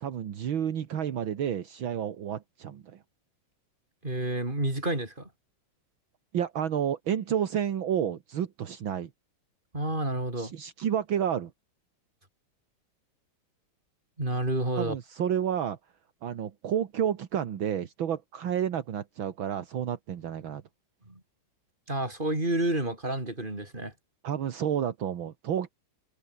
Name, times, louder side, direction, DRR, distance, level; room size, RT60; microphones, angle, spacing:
voice 1, 0.0-3.0 6.3-9.1 10.4-11.5 14.8-15.8 16.2-20.6 24.2-25.7, right 9 dB, 70° right, 2.2 m, -30 dB
voice 2, 4.0-5.3 9.7-10.5 14.2-15.0 21.1-21.2 21.9-23.9, right 1 dB, 20° right, 5.9 m, -29 dB
omnidirectional pair, 2.3 m